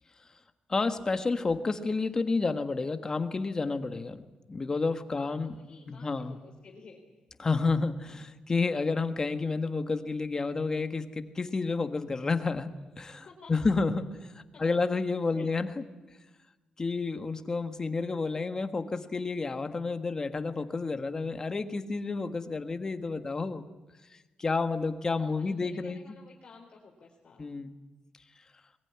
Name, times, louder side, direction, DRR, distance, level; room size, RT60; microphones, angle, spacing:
voice 1, 0.7-4.2 4.5-5.6 5.9-6.4 7.4-15.8 16.8-23.7 24.1-26.0 27.4-27.7, left 4 dB, 25° left, 9 dB, 1.5 m, -30 dB
voice 2, 5.1-7.0 13.1-13.7 14.5-14.8 15.3-15.8 25.1-27.5, left 4 dB, 40° left, -1 dB, 4.1 m, -53 dB
22.0 x 21.5 x 9.8 m, 1.2 s
wide cardioid pair, 160°, 3 cm